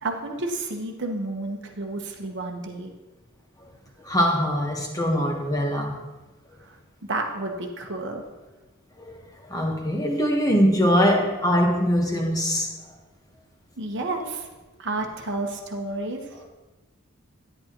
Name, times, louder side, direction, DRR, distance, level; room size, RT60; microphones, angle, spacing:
voice 1, 0.0-2.9 6.6-6.8 7.1-8.2 13.8-14.5 14.8-16.5, right 2 dB, 55° right, 3 dB, 1.1 m, -31 dB
voice 2, 4.0-6.0 9.0-12.7, equal, 15° left, 1 dB, 1.2 m, -22 dB
10.5 x 10.0 x 3.0 m, 1.1 s
head